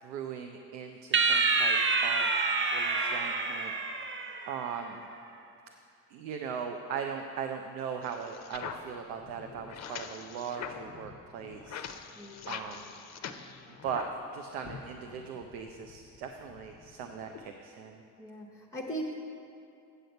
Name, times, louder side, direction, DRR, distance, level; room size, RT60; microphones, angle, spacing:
voice 1, 0.0-1.8 2.0-2.3 2.7-3.7 4.0-4.1 4.5-5.0 6.1-11.8 12.5-12.9 13.7-18.0, right 7 dB, 70° right, 4 dB, 0.7 m, -39 dB
sound 1, 1.1-4.7, right 4 dB, 25° right, 0.7 m, -27 dB
sound 2, 8.0-14.3 14.6-17.5, left 7 dB, 35° left, 0.6 m, -44 dB
voice 2, 12.2-12.6 18.2-19.1, right 1 dB, 5° left, -2 dB, 0.9 m, -39 dB
8.0 x 7.7 x 5.3 m, 2.6 s
figure-of-eight pair, 50°, 49 cm